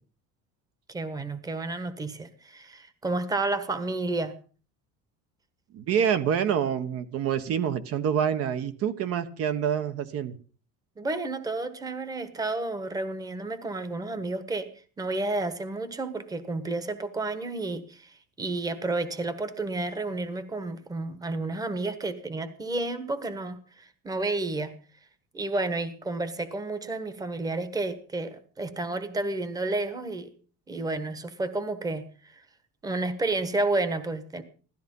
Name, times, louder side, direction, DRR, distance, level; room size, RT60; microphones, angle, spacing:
voice 1, 0.9-4.3 11.0-14.7 15.0-24.7 25.3-30.3 30.7-32.4 32.8-34.4, right 2 dB, 10° right, 13 dB, 1.3 m, -31 dB
voice 2, 5.7-10.4, right 8 dB, 50° right, 12 dB, 1.3 m, -27 dB
16.5 x 13.5 x 5.5 m, 0.40 s
cardioid pair, 160°, 31 cm